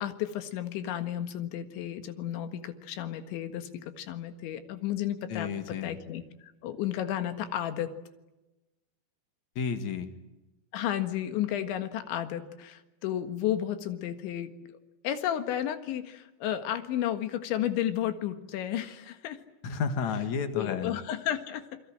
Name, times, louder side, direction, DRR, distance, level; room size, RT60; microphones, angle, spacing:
voice 1, 0.0-7.9 10.7-14.5 15.0-19.4 20.6-21.8, left 11 dB, 85° left, 8 dB, 4.0 m, -32 dB
voice 2, 5.3-5.9 9.6-10.1 19.6-20.9, left 6 dB, 50° left, 8 dB, 2.6 m, -31 dB
28.0 x 22.5 x 8.8 m, 1.0 s
omnidirectional pair, 5.2 m